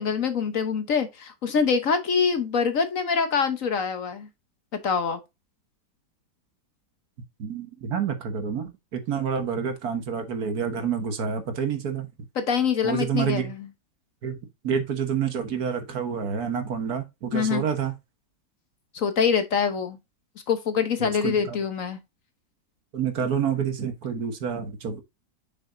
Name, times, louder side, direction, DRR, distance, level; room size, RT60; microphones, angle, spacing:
voice 1, 0.0-4.3 4.8-5.2 12.4-13.6 17.3-17.6 18.9-20.0 20.5-22.0, left 6 dB, 55° left, 1.3 m, -24 dB
voice 2, 7.4-12.1 12.8-13.5 14.2-14.4 14.6-18.0 21.0-21.6 22.9-25.0, right 7 dB, 65° right, 1.7 m, -28 dB
6.7 x 6.2 x 2.6 m
omnidirectional pair, 1.8 m